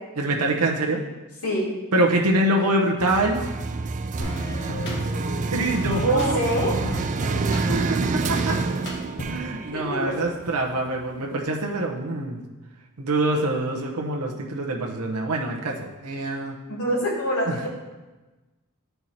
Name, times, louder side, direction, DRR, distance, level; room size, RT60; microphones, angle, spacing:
voice 1, 0.2-1.0 1.9-3.4 5.5-6.4 7.7-8.0 8.3-8.6 9.2-12.4 13.0-16.5 17.5-17.7, right 1 dB, 85° right, 0 dB, 0.9 m, -24 dB
sound 1, 3.0-11.0, right 4 dB, 35° right, 0.3 m, -28 dB
sound 2, 4.2-9.5, equal, 50° left, 1.7 m, -33 dB
voice 2, 6.0-6.7 9.7-10.1 16.7-17.7, equal, 80° left, -4 dB, 2.5 m, -25 dB
9.8 x 4.6 x 4.2 m, 1.2 s
head